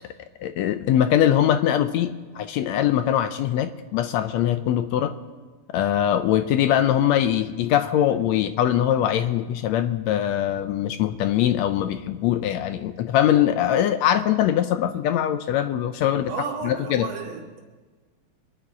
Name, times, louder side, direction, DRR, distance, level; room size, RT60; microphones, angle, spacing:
voice 1, 0.4-5.1 5.7-16.3 16.6-17.1, left 11 dB, 75° left, 10 dB, 1.7 m, -22 dB
voice 2, 16.3-17.6, right 5 dB, 90° right, -1 dB, 3.8 m, -33 dB
26.5 x 9.6 x 4.8 m, 1.4 s
omnidirectional pair, 3.4 m